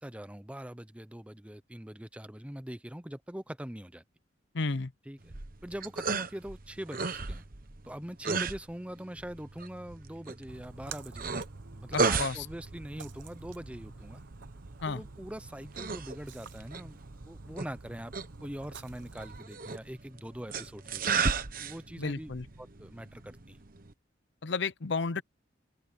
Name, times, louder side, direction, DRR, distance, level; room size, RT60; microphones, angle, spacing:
voice 1, 0.0-4.0 5.1-5.3 5.6-7.5 7.9-11.2 11.8-14.2 14.9-18.1 18.4-21.2 21.6-23.6, equal, 5° right, 0.7 m, -43 dB
voice 2, 4.5-4.9 11.9-12.5 14.8-15.0 22.0-22.4 24.4-25.2, left 4 dB, 60° left, 0.7 m, -32 dB
sound 1, 5.2-23.9, right 4 dB, 45° right, 1.2 m, -36 dB
Splash splatter, 10.5-19.4, right 4 dB, 70° right, 1.0 m, -48 dB
open air
head